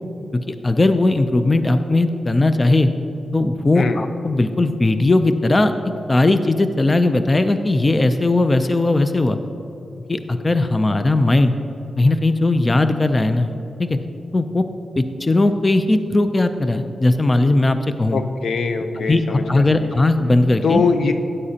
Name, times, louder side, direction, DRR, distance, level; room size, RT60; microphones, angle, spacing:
voice 1, 0.3-2.9 3.3-5.7 6.1-9.4 10.1-11.5 12.0-13.5 13.8-14.0 14.3-14.6 15.0-18.2 19.1-20.8, left 2 dB, 30° left, 9 dB, 0.5 m, -18 dB
voice 2, 18.1-19.9 20.6-21.1, left 4 dB, 75° left, 7 dB, 0.6 m, -22 dB
13.0 x 9.7 x 2.8 m, 2.9 s
cardioid pair, 75°, 0 cm